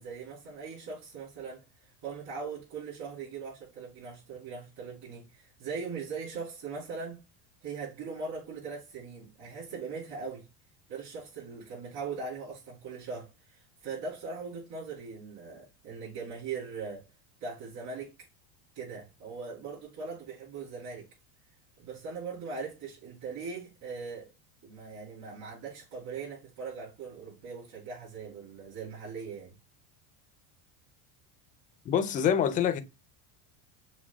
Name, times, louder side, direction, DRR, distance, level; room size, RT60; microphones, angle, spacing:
voice 1, 0.0-7.2 7.6-10.5 10.9-17.0 17.4-18.1 18.7-21.1 21.8-24.3 24.6-29.5, right 5 dB, 50° right, 3.0 m, -40 dB
voice 2, 31.9-32.8, left 8 dB, 20° left, 0.3 m, -25 dB
6.1 x 2.2 x 3.5 m
supercardioid pair, 135°, 46 cm